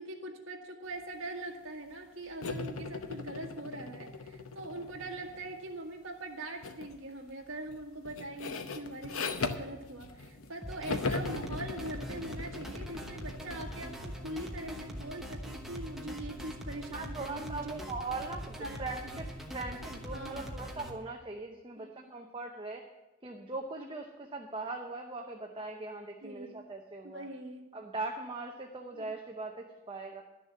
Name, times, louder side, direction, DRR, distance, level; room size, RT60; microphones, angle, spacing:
voice 1, 0.0-17.9 18.6-19.2 20.1-20.6 21.8-22.1 26.2-26.6 27.0-27.6 28.9-29.1, right 2 dB, 65° right, 1 dB, 1.7 m, -42 dB
sound 1, 2.4-5.7 6.6-6.9 7.3-10.5 10.8-14.4, left 3 dB, 85° left, 0.8 m, -39 dB
sound 2, 10.6-20.9, equal, ahead, 1.1 m, -42 dB
voice 2, 16.9-22.8 23.2-27.3 27.7-30.2, right 3 dB, 25° right, 2 dB, 0.8 m, -40 dB
12.0 x 6.9 x 7.5 m, 1.1 s
head